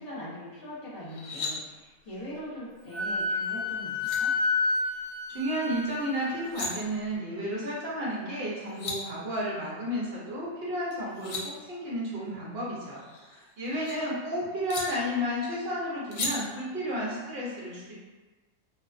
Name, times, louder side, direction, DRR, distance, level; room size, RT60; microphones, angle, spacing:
voice 1, 0.0-4.3, left 1 dB, 45° left, -11 dB, 1.1 m, -41 dB
sound 1, 1.0-1.5 3.6-3.7 4.0-4.2 6.3-6.7 8.4-8.5 8.6-9.0 10.9-11.4 12.9-13.9 14.7-14.8 16.1-16.3, left 3 dB, 75° left, 0.9 m, -35 dB
Wind instrument woodwind instrument, 2.9-6.4, left 3 dB, 10° left, 1.0 m, -29 dB
voice 2, 5.3-17.9, equal, 55° right, -6 dB, 0.8 m, -32 dB
2.5 x 2.2 x 2.4 m, 1.2 s
omnidirectional pair, 1.4 m